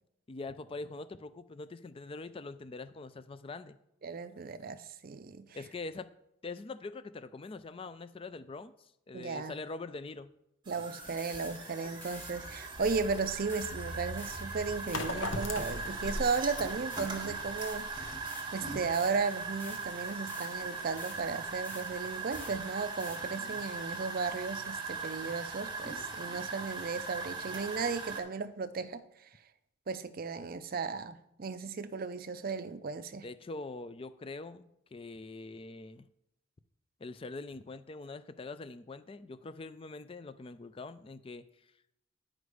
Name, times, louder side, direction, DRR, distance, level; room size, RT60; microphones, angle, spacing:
voice 1, 0.3-3.8 5.5-6.1 6.4-10.3 23.3-23.7 33.2-36.1 37.0-41.5, left 3 dB, 30° left, 0.4 m, -43 dB
voice 2, 4.0-5.5 9.1-9.5 10.7-17.9 18.5-29.0 29.9-33.3, right 4 dB, 50° right, 0.5 m, -35 dB
sound 1, 10.7-28.2, right 4 dB, 25° right, 1.3 m, -40 dB
sound 2, 11.0-23.7, left 1 dB, 10° left, 1.1 m, -52 dB
sound 3, 12.8-18.1, left 2 dB, 75° left, 0.9 m, -40 dB
9.7 x 5.1 x 4.8 m
head